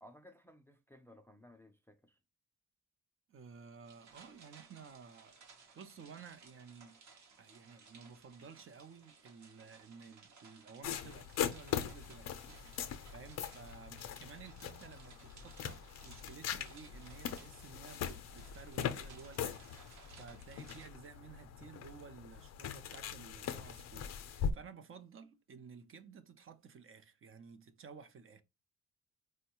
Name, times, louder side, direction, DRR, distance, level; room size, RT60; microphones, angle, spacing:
voice 1, 0.0-2.2, left 1 dB, 10° left, 0.3 m, -59 dB
voice 2, 3.3-7.0 7.4-28.4, right 6 dB, 45° right, 0.6 m, -54 dB
sound 1, 3.9-20.9, right 5 dB, 65° right, 1.0 m, -60 dB
sound 2, 10.8-24.5, left 8 dB, 60° left, 0.5 m, -41 dB
4.5 x 2.2 x 2.8 m
cardioid pair, 90°, 30 cm